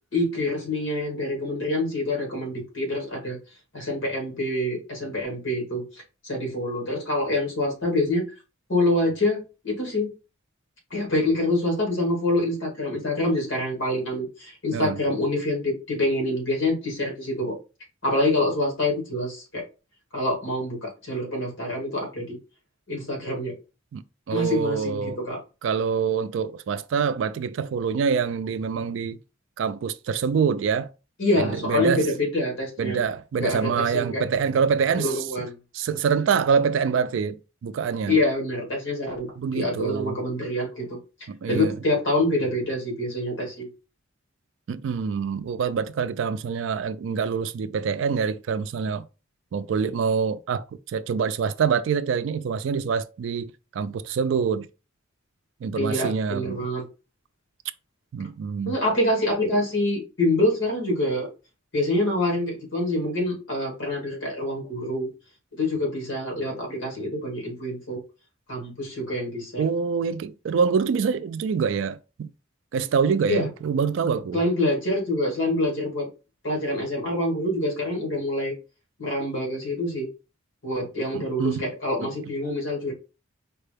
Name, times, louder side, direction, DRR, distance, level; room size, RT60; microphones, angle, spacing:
voice 1, 0.1-3.4 3.7-8.2 8.7-10.1 10.9-17.6 18.0-19.7 20.1-22.4 22.9-23.6 24.3-25.4 31.2-33.0 33.4-34.2 35.0-35.6 38.1-39.3 39.5-41.0 41.5-43.7 55.7-56.8 58.6-61.3 61.7-65.1 65.5-68.0 68.5-69.7 73.3-73.5 74.3-76.1 76.4-78.5 79.0-80.1 80.6-82.9, left 1 dB, 70° left, 1.7 m, -26 dB
voice 2, 24.3-25.2 25.6-29.2 29.6-30.9 31.4-32.1 32.8-35.3 35.7-38.2 39.4-40.2 41.3-41.8 44.7-49.0 49.5-54.7 55.6-56.6 58.1-58.8 69.6-72.3 72.7-74.4 81.1-81.6 82.0-82.1, right 6 dB, 65° right, 0.3 m, -25 dB
4.6 x 2.2 x 3.3 m
head